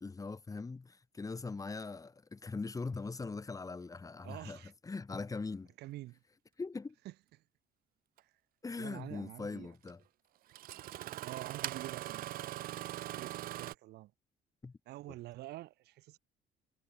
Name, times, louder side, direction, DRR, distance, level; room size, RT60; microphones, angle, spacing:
voice 1, 0.0-5.7 6.6-7.0 8.6-10.0 14.6-14.7, left 4 dB, 20° left, 1.8 m, -41 dB
voice 2, 4.2-4.7 5.8-6.2 7.0-7.1 8.8-9.7 11.2-12.3 13.1-14.1 14.9-16.2, right 17 dB, 75° right, 1.0 m, -47 dB
Engine starting, 8.2-8.3 9.9-10.0 10.5-13.7, right 14 dB, 60° right, 0.5 m, -41 dB
cardioid pair, 110°, 17 cm